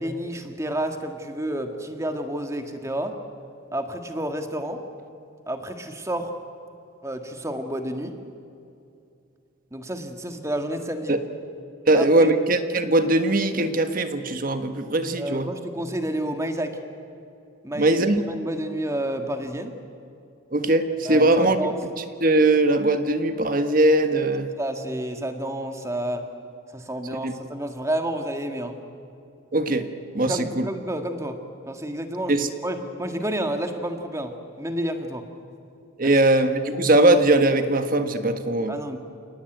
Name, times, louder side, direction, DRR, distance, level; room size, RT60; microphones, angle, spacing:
voice 1, 0.0-3.2 3.7-4.8 5.5-6.3 7.0-8.2 9.7-11.2 11.9-12.3 15.2-16.8 17.6-18.0 18.3-19.7 21.1-21.8 24.6-26.3 26.7-28.8 30.3-31.4 31.7-35.3 36.0-36.2 38.7-39.0, right 1 dB, 15° right, 6 dB, 1.8 m, -30 dB
voice 2, 11.9-15.5 17.7-18.2 20.5-21.6 22.2-24.5 27.2-27.3 29.5-29.9 30.1-30.7 32.3-32.5 36.0-38.8, right 2 dB, 40° right, 8 dB, 1.4 m, -20 dB
29.5 x 18.5 x 9.2 m, 2.6 s
head